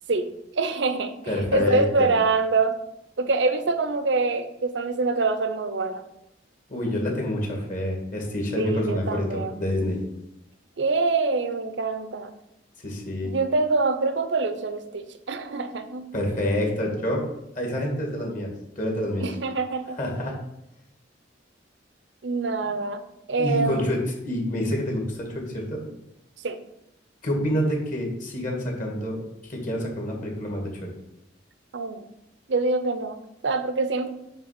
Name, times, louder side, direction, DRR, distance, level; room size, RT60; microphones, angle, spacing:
voice 1, 0.6-2.8 3.2-6.0 8.6-9.5 10.8-12.3 13.2-16.1 19.2-20.0 22.2-23.0 23.3-23.9 26.4-26.6 31.7-32.0 32.5-34.1, right 3 dB, 75° right, 10 dB, 0.7 m, -25 dB
voice 2, 1.3-2.1 6.7-10.0 12.8-13.3 16.1-17.3 17.6-19.3 20.0-20.4 22.6-22.8 23.4-25.8 27.2-29.2 29.5-30.9, left 1 dB, 45° left, 0 dB, 2.1 m, -27 dB
8.9 x 3.4 x 5.8 m, 0.86 s
head